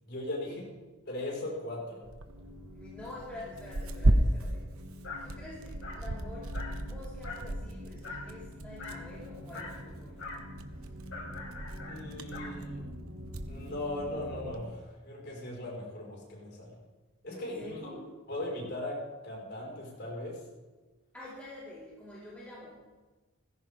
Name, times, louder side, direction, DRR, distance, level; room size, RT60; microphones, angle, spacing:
voice 1, 0.1-0.6 1.1-2.1 11.9-12.9 13.5-16.8 17.2-17.9 18.3-20.4, left 1 dB, 50° left, -2 dB, 5.2 m, -38 dB
Tearing, 2.0-14.7, right 1 dB, 80° right, 1.2 m, -35 dB
sound 1, 2.3-14.6, left 1 dB, 60° right, 4.0 m, -47 dB
voice 2, 2.7-4.6 5.2-6.5 6.8-10.2 17.3-18.0 21.1-22.8, left 1 dB, 5° left, -10 dB, 4.2 m, -47 dB
Dog, 5.0-5.3 5.8-6.1 6.5-6.8 7.2-7.5 8.0-8.3 8.8-9.1 9.5-9.8 10.2-10.5 11.1-12.6, left 3 dB, 65° left, 4.0 m, -43 dB
18.0 x 15.5 x 3.7 m, 1.2 s
head